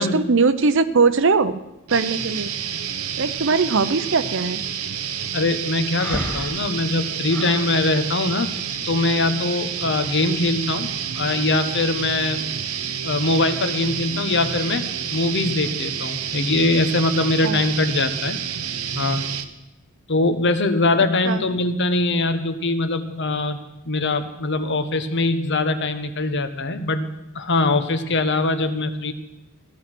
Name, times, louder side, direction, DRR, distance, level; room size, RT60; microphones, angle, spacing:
voice 1, 0.0-1.6 1.9-2.5 3.2-4.6 17.4-17.6 21.2-21.4, right 4 dB, 60° right, 12 dB, 0.7 m, -20 dB
sound 1, 1.9-19.4, right 8 dB, 85° right, 1.0 m, -29 dB
voice 2, 5.3-8.5 8.8-10.9 11.2-12.5 13.0-18.4 18.9-19.2 20.1-23.6 23.9-27.1 27.3-29.1, left 2 dB, 55° left, 10 dB, 1.1 m, -22 dB
Breathing, 6.0-7.7, equal, 10° left, 2.2 m, -32 dB
16.0 x 12.0 x 6.1 m, 0.95 s
head